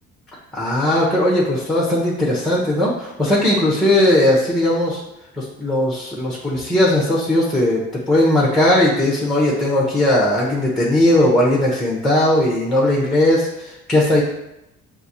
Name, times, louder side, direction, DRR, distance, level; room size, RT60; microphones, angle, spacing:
voice 1, 0.5-5.0 5.3-14.2, left 1 dB, ahead, -4 dB, 0.8 m, -18 dB
5.7 x 2.7 x 2.7 m, 0.86 s
cardioid pair, 100°, 30 cm